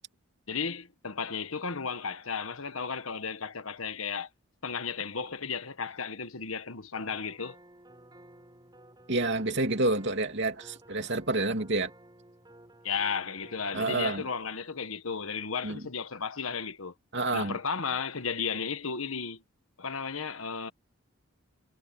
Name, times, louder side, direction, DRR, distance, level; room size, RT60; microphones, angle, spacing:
voice 1, 0.5-4.3 4.6-7.5 12.8-16.9 17.3-19.4 19.8-20.7, left 5 dB, 80° left, 1.5 m, -34 dB
sound 1, 6.9-14.3, right 1 dB, 20° right, 7.9 m, -54 dB
voice 2, 9.1-11.9 13.7-14.2 15.6-15.8 17.1-17.5, right 2 dB, 55° right, 2.9 m, -28 dB
head